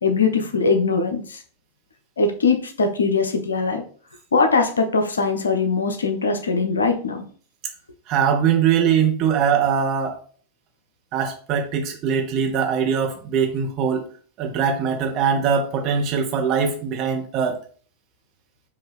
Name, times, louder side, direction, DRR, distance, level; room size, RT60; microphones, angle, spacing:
voice 1, 0.0-1.4 2.2-3.8 4.3-7.2, left 4 dB, 70° left, 7 dB, 0.6 m, -21 dB
voice 2, 8.1-10.2 11.1-14.0 14.4-17.6, right 7 dB, 40° right, 3 dB, 1.0 m, -21 dB
4.6 x 2.6 x 3.4 m, 0.44 s
figure-of-eight pair, 90°, 0 cm